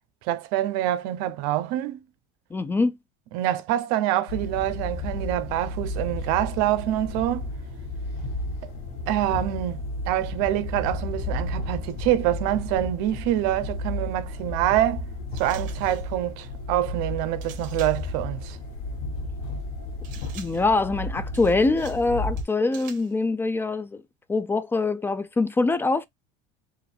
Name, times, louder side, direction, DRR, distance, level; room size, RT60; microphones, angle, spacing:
voice 1, 0.2-2.0 3.3-7.5 9.1-9.8 10.1-15.0 15.3-18.6, right 13 dB, 70° right, 0.7 m, -26 dB
voice 2, 2.5-3.0 20.3-24.0 24.3-26.1, left 3 dB, 15° left, 0.4 m, -24 dB
sound 1, 4.3-22.4, left 2 dB, 75° left, 1.3 m, -33 dB
sound 2, 15.4-16.1 17.4-18.1 20.0-20.7 21.3-22.1 22.4-23.1, right 9 dB, 55° right, 1.2 m, -47 dB
4.9 x 2.5 x 3.3 m
supercardioid pair, 125°, 16 cm